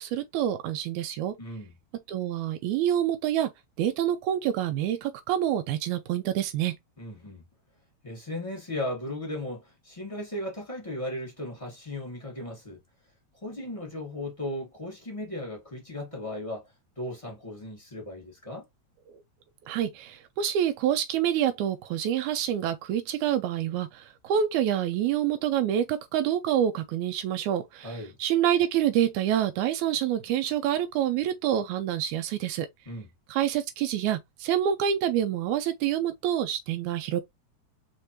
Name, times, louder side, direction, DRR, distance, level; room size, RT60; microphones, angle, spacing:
voice 1, 0.0-1.3 2.1-3.5 3.8-6.8 19.7-32.7 33.3-37.2, right 10 dB, 90° right, 2.0 m, -27 dB
voice 2, 1.4-1.7 7.0-7.4 8.0-12.8 13.4-18.7 27.8-28.2 32.8-33.1, left 1 dB, 20° left, 0.9 m, -36 dB
5.1 x 3.1 x 2.9 m
omnidirectional pair, 3.3 m